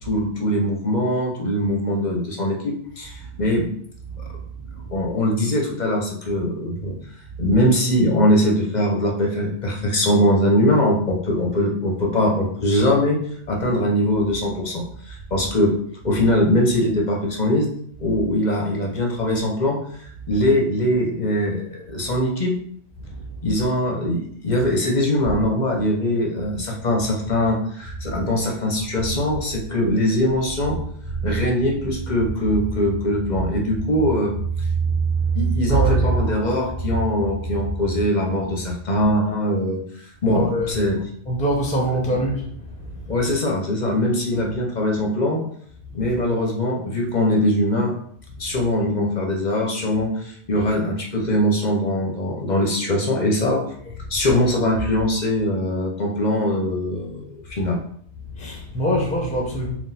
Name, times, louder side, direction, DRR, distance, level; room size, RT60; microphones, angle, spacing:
voice 1, 0.0-3.7 4.9-6.9 7.4-13.2 13.5-15.7 16.0-17.7 18.0-22.5 23.4-30.8 31.2-34.3 35.3-39.8 40.2-40.9 43.1-45.4 45.9-47.9 48.4-53.6 54.1-57.8, left 1 dB, 45° left, 0 dB, 0.7 m, -22 dB
voice 2, 4.1-5.1 7.3-7.6 15.3-15.5 18.1-18.2 20.3-20.4 23.0-23.6 28.0-28.2 29.0-29.1 30.6-30.8 31.0-31.4 32.5-32.6 34.5-36.2 36.8-37.0 37.4-37.5 37.9-38.0 40.2-40.9 41.2-43.3 44.3-44.5 45.9-46.1 48.5-48.6 53.8-54.0 58.2-59.7, right 2 dB, 5° left, 0 dB, 0.7 m, -25 dB
3.8 x 2.5 x 4.1 m, 0.63 s
omnidirectional pair, 1.2 m